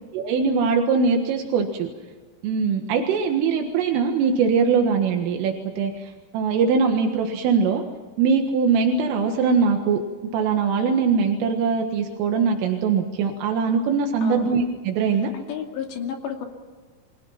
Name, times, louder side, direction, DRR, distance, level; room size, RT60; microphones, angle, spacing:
voice 1, 0.1-1.9 2.4-7.8 8.2-10.0 10.3-15.3, right 5 dB, 80° right, 3 dB, 4.2 m, -22 dB
voice 2, 14.2-14.5 15.3-16.5, left 8 dB, 65° left, 3 dB, 4.6 m, -32 dB
29.5 x 24.0 x 5.8 m, 1.4 s
omnidirectional pair, 5.7 m